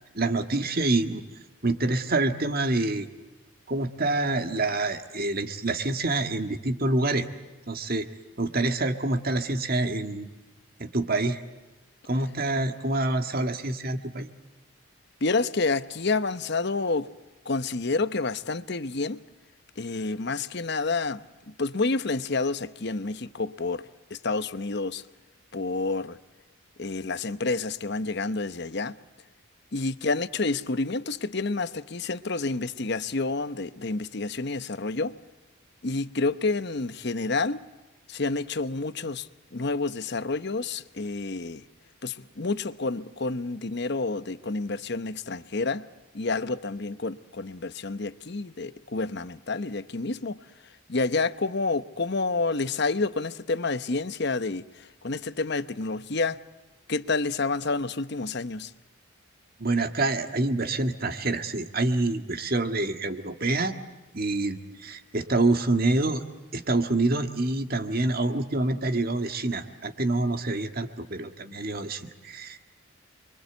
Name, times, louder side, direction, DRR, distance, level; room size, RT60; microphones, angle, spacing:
voice 1, 0.1-1.2 1.6-3.1 3.7-7.3 7.7-8.1 8.4-10.3 10.8-11.4 12.1-14.3 59.6-63.8 64.1-66.2 66.5-72.7, right 2 dB, 45° right, 1.8 m, -26 dB
voice 2, 15.2-17.1 17.4-19.2 19.8-25.0 25.5-26.2 26.8-29.0 29.7-35.2 35.8-37.6 38.1-41.6 42.0-45.9 46.1-50.5 50.9-56.4 56.9-58.7, left 3 dB, 50° left, 0.9 m, -29 dB
29.0 x 23.5 x 8.0 m
head